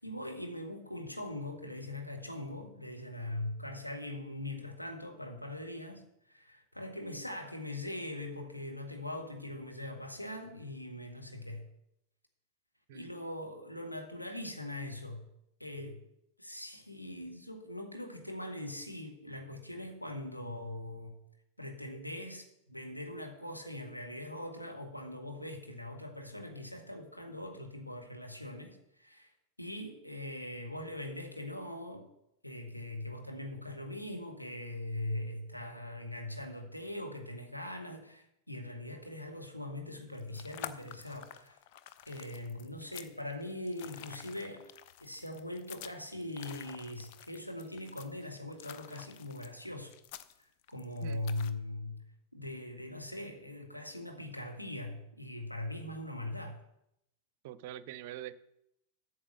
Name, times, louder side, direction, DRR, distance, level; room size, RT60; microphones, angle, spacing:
voice 1, 0.0-11.6 12.9-15.2 15.6-16.0 16.4-21.1 21.6-29.3 29.6-32.1 32.4-41.6 42.1-44.7 45.0-49.9 50.7-52.0 52.3-56.6, left 1 dB, 90° left, 1.6 m, -41 dB
sound 1, 40.0-51.5, left 12 dB, 50° left, 0.6 m, -49 dB
voice 2, 57.4-58.3, right 13 dB, 50° right, 0.5 m, -44 dB
8.7 x 7.0 x 6.5 m
figure-of-eight pair, 90°, 0 cm